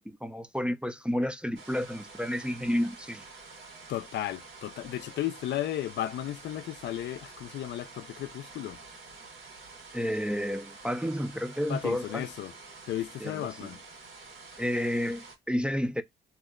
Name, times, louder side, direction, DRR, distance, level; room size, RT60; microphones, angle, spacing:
voice 1, 0.0-3.2 9.9-12.3 13.2-13.7 14.6-16.0, equal, 5° right, 0.4 m, -31 dB
sound 1, 1.5-15.3, right 4 dB, 70° right, 1.6 m, -48 dB
voice 2, 3.9-8.8 11.7-12.5 12.9-13.8, left 12 dB, 65° left, 0.4 m, -34 dB
2.9 x 2.1 x 3.5 m
cardioid pair, 90°, 20 cm